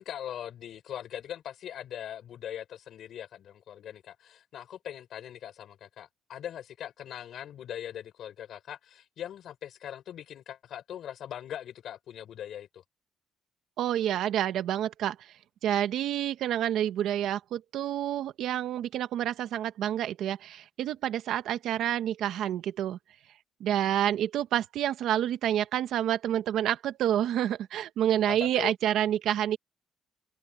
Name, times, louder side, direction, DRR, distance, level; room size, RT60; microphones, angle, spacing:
voice 1, 0.0-12.8 28.3-28.7, left 10 dB, 60° left, 4.8 m, -41 dB
voice 2, 13.8-15.2 15.6-23.0 23.6-29.6, right 11 dB, 75° right, 1.3 m, -28 dB
cardioid pair, 155°, 0 cm